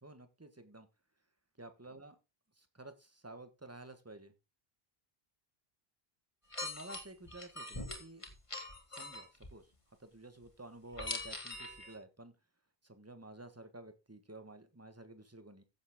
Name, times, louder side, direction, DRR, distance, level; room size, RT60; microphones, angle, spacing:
voice 1, 0.0-0.9 1.6-2.1 2.6-4.3 6.6-8.2 8.9-9.7 10.0-12.3 12.8-15.6, right 2 dB, 15° right, 9 dB, 1.4 m, -52 dB
sound 1, 6.5-9.5 10.9-12.0, left 2 dB, 30° left, 2.3 m, -42 dB
15.0 x 7.3 x 3.6 m, 0.27 s
omnidirectional pair, 1.0 m